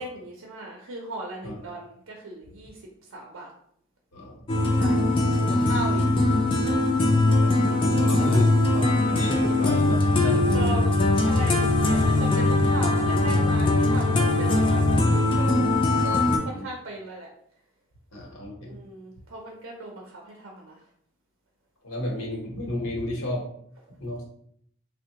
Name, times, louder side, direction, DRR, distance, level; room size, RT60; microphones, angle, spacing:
voice 1, 0.0-2.8 3.1-3.5 4.7-6.0 7.7-8.4 8.9-9.2 10.3-17.3 18.6-20.8, right 1 dB, 75° right, -1 dB, 0.5 m, -37 dB
sound 1, 4.5-16.4, left 2 dB, 25° left, 0.3 m, -21 dB
voice 2, 4.9-5.2 7.6-10.8 16.5-16.7 18.1-18.8 21.8-23.4 24.0-24.2, left 1 dB, 80° left, -2 dB, 0.9 m, -32 dB
3.5 x 2.1 x 2.8 m, 0.66 s
head